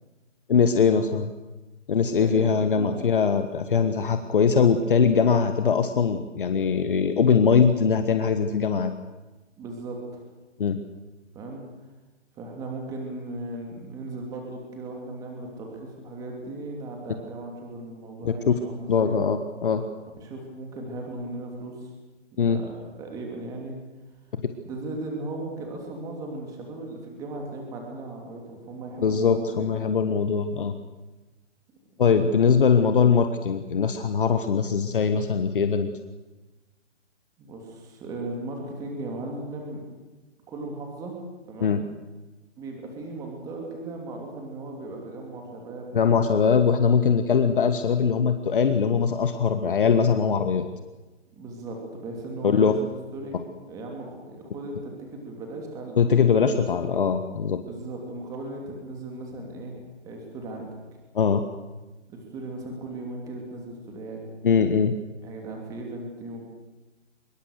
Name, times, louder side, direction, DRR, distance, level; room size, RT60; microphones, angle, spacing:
voice 1, 0.5-1.3 1.9-8.9 10.6-10.8 18.2-18.5 18.9-19.8 22.4-22.6 29.0-30.7 32.0-35.9 41.6-41.8 45.9-50.7 52.4-52.7 56.0-57.6 61.1-61.4 64.4-64.9, left 6 dB, 45° left, 8 dB, 1.6 m, -21 dB
voice 2, 2.1-3.0 9.6-10.2 11.3-11.6 12.3-19.2 20.2-21.9 22.4-23.8 24.6-29.9 32.1-32.3 37.4-39.8 40.5-41.2 41.5-41.8 42.6-46.0 51.4-53.4 53.7-56.2 56.5-56.7 57.7-60.7 62.1-64.2 65.2-66.5, right 2 dB, 10° right, 1 dB, 2.8 m, -37 dB
25.0 x 22.5 x 6.6 m, 1.1 s
hypercardioid pair, 165°, 35 cm